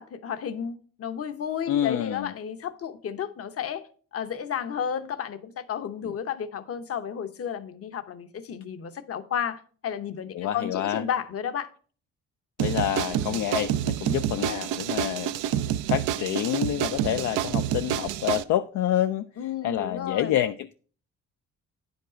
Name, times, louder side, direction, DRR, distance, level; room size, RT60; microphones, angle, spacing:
voice 1, 0.0-11.7 19.4-20.4, left 8 dB, 50° left, 0.8 m, -32 dB
voice 2, 1.7-2.3 6.0-6.1 10.3-11.0 12.6-15.3 15.9-19.3 19.6-20.7, left 11 dB, 70° left, 0.4 m, -27 dB
sound 1, 12.6-18.4, right 11 dB, 90° right, 0.5 m, -28 dB
9.2 x 5.2 x 4.9 m
cardioid pair, 90°, 30 cm